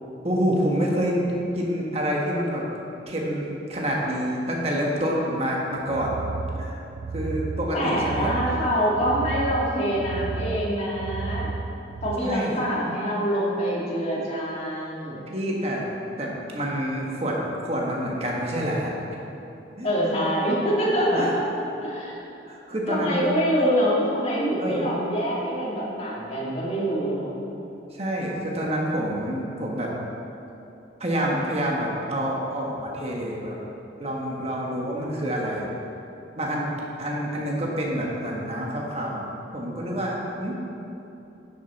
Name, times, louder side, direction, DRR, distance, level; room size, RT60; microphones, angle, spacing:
voice 1, 0.2-2.6 3.1-6.1 6.5-6.8 7.1-8.3 12.2-12.6 15.3-15.9 16.2-18.9 19.8-19.9 21.1-21.3 22.5-23.2 24.6-24.9 27.9-29.9 31.0-33.6 34.0-35.7 36.4-36.7 37.0-39.2 39.5-40.6, equal, 35° right, -2 dB, 1.3 m, -27 dB
sound 1, 5.8-12.2, right 3 dB, 65° right, 0.4 m, -33 dB
voice 2, 7.7-11.5 12.0-15.3 19.8-22.2 22.9-27.3, equal, 35° left, -5 dB, 1.9 m, -25 dB
10.5 x 6.6 x 4.1 m, 2.9 s
head